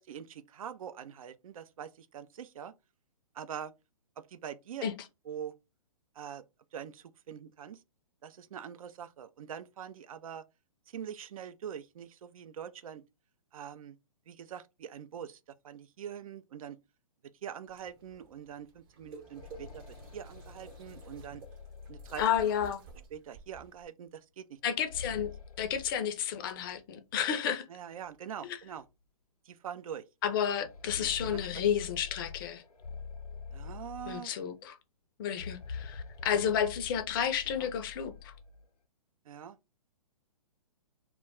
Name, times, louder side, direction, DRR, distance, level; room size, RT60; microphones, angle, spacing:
voice 1, 0.0-2.7 3.3-3.7 4.2-4.9 5.3-5.5 6.2-6.4 6.7-7.8 8.2-10.4 10.9-13.0 13.5-14.0 14.3-15.4 15.6-16.8 17.4-21.4 21.9-22.2 23.1-24.6 27.7-28.8 29.5-30.0 31.0-31.4 33.5-34.3 36.3-36.5 37.5-37.7 39.3-39.6, right 8 dB, 70° right, 0.4 m, -44 dB
sound 1, 17.7-23.8, right 5 dB, 40° right, 0.8 m, -52 dB
sound 2, 19.0-22.8 24.6-26.8 27.1-27.2 28.1-28.2 28.7-28.8 30.4-34.6 35.3-38.7, left 5 dB, 85° left, 0.6 m, -46 dB
voice 2, 22.2-22.8 24.6-25.3 25.6-27.7 28.4-28.6 30.2-32.6 34.1-34.8 35.2-38.3, left 8 dB, 35° left, 0.4 m, -31 dB
2.2 x 2.1 x 3.5 m
hypercardioid pair, 130°, 19 cm